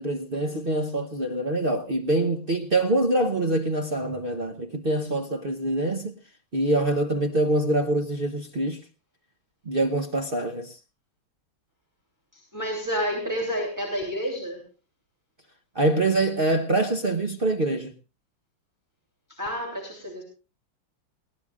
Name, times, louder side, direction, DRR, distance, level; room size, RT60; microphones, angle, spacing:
voice 1, 0.0-6.2 6.5-8.8 9.6-10.8 15.7-17.9, right 2 dB, 45° right, 0.7 m, -25 dB
voice 2, 12.3-14.6 19.3-20.2, equal, 10° right, 3.3 m, -30 dB
20.5 x 17.0 x 2.4 m
omnidirectional pair, 2.4 m